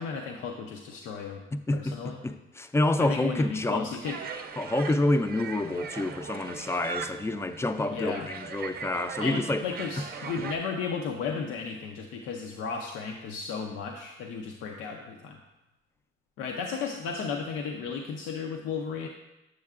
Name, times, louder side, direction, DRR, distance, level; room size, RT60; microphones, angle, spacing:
voice 1, 0.0-1.4 1.7-2.2 3.0-4.2 7.9-8.3 9.2-15.4 16.4-19.1, left 5 dB, 90° left, 2 dB, 0.5 m, -34 dB
voice 2, 1.5-2.0 2.2-3.9 4.6-9.6, left 2 dB, 15° left, 9 dB, 0.4 m, -28 dB
sound 1, 4.0-10.6, right 6 dB, 50° right, 0.6 m, -40 dB
7.5 x 6.5 x 2.4 m, 1.0 s
cardioid pair, 90°, 20 cm